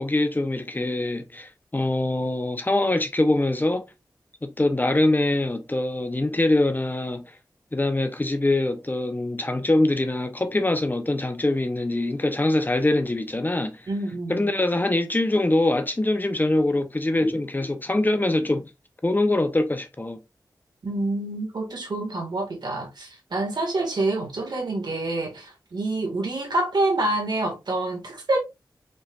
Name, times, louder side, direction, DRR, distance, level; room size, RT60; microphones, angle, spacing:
voice 1, 0.0-3.8 4.4-7.2 7.7-13.8 14.3-18.7 19.0-20.2, left 2 dB, 25° left, 0.8 m, -23 dB
voice 2, 13.9-14.5 20.8-28.4, right 2 dB, 70° right, 1.8 m, -27 dB
5.3 x 3.3 x 2.4 m
cardioid pair, 55°, 8 cm